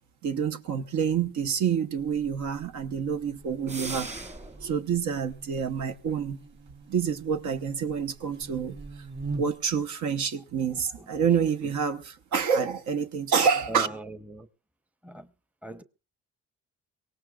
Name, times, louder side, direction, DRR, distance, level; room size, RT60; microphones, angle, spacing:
voice 1, 0.2-4.1 4.6-6.4 6.9-8.8 9.3-13.9, right 7 dB, 75° right, 1.1 m, -27 dB
Buzz, 2.0-9.8, right 3 dB, 40° right, 5.4 m, -43 dB
sound 1, 3.7-4.7, right 2 dB, 20° right, 1.8 m, -37 dB
voice 2, 10.7-11.4 11.6-11.7 13.7-14.5 15.0-15.3 15.6-15.8, right 2 dB, 5° right, 0.8 m, -41 dB
23.5 x 18.0 x 2.4 m
cardioid pair, 90°, 30 cm